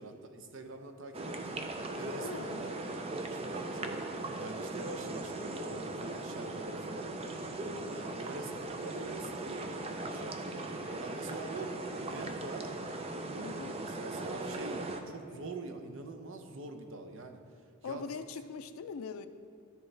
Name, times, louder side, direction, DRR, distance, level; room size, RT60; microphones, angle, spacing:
voice 1, 0.0-1.6 1.9-2.8 3.1-4.0 4.4-7.1 7.6-11.8 12.0-12.7 13.1-17.4 17.8-18.0, right 2 dB, 60° right, 6 dB, 0.7 m, -44 dB
sound 1, 1.1-15.0, right 2 dB, 25° right, 0.5 m, -39 dB
voice 2, 2.0-2.6 13.4-13.8 17.8-19.3, left 5 dB, 70° left, 9 dB, 0.4 m, -42 dB
sound 2, 13.2-16.4, right 2 dB, 5° right, 2.0 m, -60 dB
13.0 x 4.7 x 3.3 m, 2.5 s
head